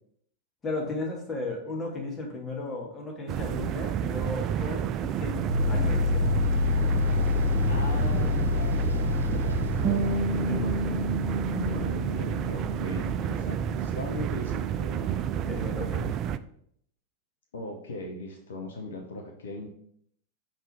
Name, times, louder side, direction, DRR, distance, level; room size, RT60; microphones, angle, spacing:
voice 1, 0.6-6.4 10.5-11.1 11.5-11.8 15.5-16.1, left 2 dB, 20° left, 0 dB, 1.7 m, -35 dB
sound 1, 3.3-16.4, right 9 dB, 35° right, 0.3 m, -30 dB
sound 2, 5.5-13.6, left 5 dB, 80° right, 0.5 m, -28 dB
voice 2, 7.7-9.7 11.4-15.1 17.5-19.7, left 2 dB, 65° left, 2 dB, 0.9 m, -40 dB
Bass guitar, 9.8-16.1, right 1 dB, 15° right, 0.8 m, -34 dB
5.8 x 3.6 x 4.8 m, 0.68 s
figure-of-eight pair, 90°, 0 cm